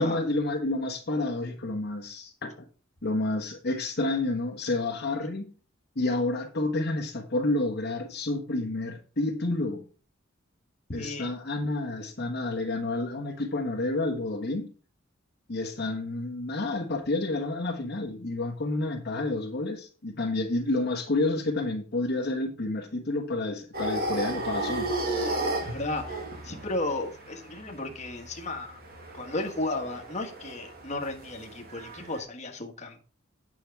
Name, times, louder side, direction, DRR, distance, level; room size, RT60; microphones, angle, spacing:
voice 1, 0.0-2.5 3.0-5.5 5.9-9.8 10.9-14.7 15.5-24.9, left 2 dB, 50° left, 1.3 m, -29 dB
voice 2, 11.0-11.3 25.6-28.8 29.1-33.0, left 2 dB, 35° left, 1.5 m, -34 dB
sound 1, 23.7-32.2, right 1 dB, 45° right, 2.1 m, -34 dB
9.2 x 6.2 x 4.6 m
head